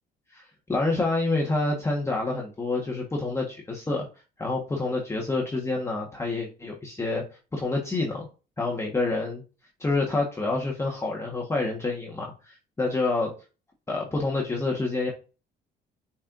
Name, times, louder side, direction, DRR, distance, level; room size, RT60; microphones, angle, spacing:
voice 1, 0.3-4.1 4.4-7.2 7.5-8.3 8.6-9.4 9.8-13.3 13.9-15.1, left 3 dB, 15° left, -2 dB, 1.4 m, -28 dB
8.4 x 4.5 x 2.6 m, 0.33 s
cardioid pair, 110°, 17 cm